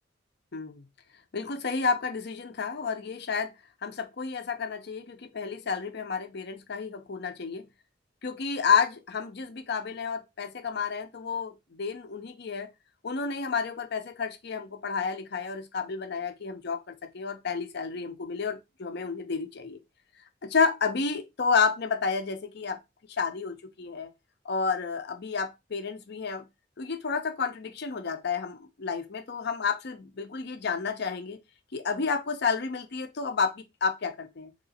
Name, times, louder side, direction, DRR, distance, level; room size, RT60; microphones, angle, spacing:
voice 1, 0.5-0.8 1.3-3.5 3.8-7.7 8.2-12.7 13.0-19.8 20.4-22.8 23.2-24.1 24.4-26.5 26.8-31.4 31.7-34.5, left 5 dB, 60° left, 0.7 m, -30 dB
3.9 x 3.0 x 4.2 m
head